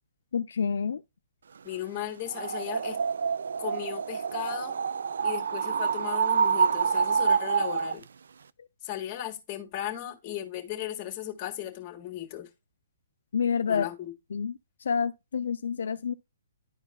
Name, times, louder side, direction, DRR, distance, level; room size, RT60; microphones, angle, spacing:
voice 1, 0.3-1.0 13.3-13.9 14.3-14.5 14.8-16.1, left 6 dB, 70° left, 0.4 m, -28 dB
voice 2, 1.6-3.0 3.6-4.7 5.2-8.0 8.8-12.5 13.7-14.1, left 12 dB, 30° left, 1.8 m, -36 dB
sound 1, 2.3-8.0, right 6 dB, 75° right, 0.3 m, -27 dB
11.5 x 4.5 x 2.2 m
hypercardioid pair, 140°, 0 cm